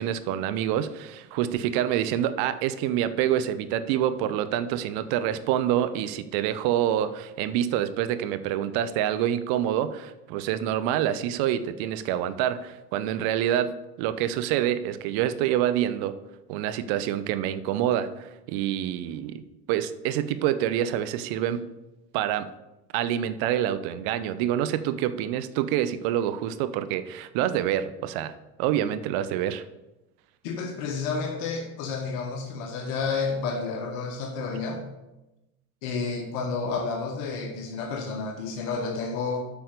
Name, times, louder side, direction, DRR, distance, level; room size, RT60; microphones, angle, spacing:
voice 1, 0.0-16.1 16.5-19.4 19.7-21.6 22.1-22.5 22.9-28.3 28.6-29.6, right 11 dB, 55° right, 12 dB, 0.9 m, -27 dB
voice 2, 30.4-34.8 35.8-39.4, left 4 dB, 60° left, 3 dB, 1.4 m, -30 dB
8.2 x 5.7 x 6.6 m, 0.99 s
hypercardioid pair, 70°, 44 cm